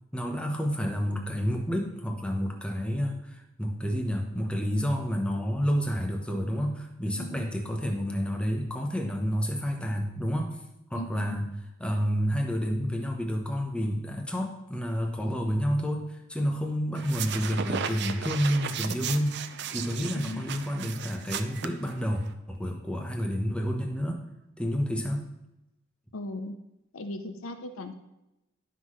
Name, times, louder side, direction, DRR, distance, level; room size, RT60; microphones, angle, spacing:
voice 1, 0.1-10.6 10.9-11.5 11.8-19.4 19.7-22.2 22.5-24.2 24.6-25.2, equal, 5° left, 2 dB, 0.9 m, -29 dB
voice 2, 7.1-7.5 10.9-11.4 20.1-20.5 26.1-26.6 26.9-28.0, left 2 dB, 80° left, 8 dB, 0.7 m, -38 dB
sound 1, 17.0-22.3, right 7 dB, 55° right, 0.5 m, -35 dB
11.5 x 5.8 x 3.1 m, 0.92 s
head